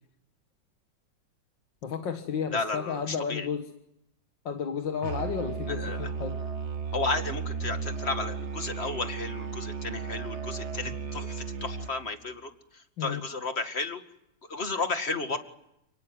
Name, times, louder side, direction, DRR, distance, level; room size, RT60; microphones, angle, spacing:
voice 1, 1.8-3.7 4.5-6.4 13.0-13.2, left 6 dB, 75° left, 5 dB, 2.2 m, -32 dB
voice 2, 2.5-3.5 5.7-6.0 6.9-12.5 13.0-14.0 14.5-15.4, left 3 dB, 35° left, 7 dB, 2.3 m, -33 dB
Musical instrument, 5.0-12.0, right 5 dB, 40° right, 1.5 m, -35 dB
30.0 x 18.5 x 9.3 m, 0.81 s
omnidirectional pair, 2.0 m